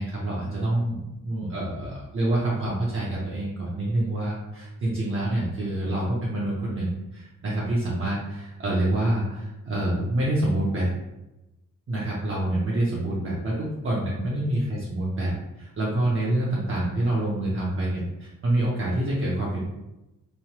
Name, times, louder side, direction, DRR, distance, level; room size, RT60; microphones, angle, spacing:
voice 1, 0.0-10.9 11.9-13.5 13.8-19.6, right 1 dB, 40° right, -6 dB, 0.5 m, -27 dB
3.0 x 2.1 x 2.8 m, 0.96 s
wide cardioid pair, 180°, 33 cm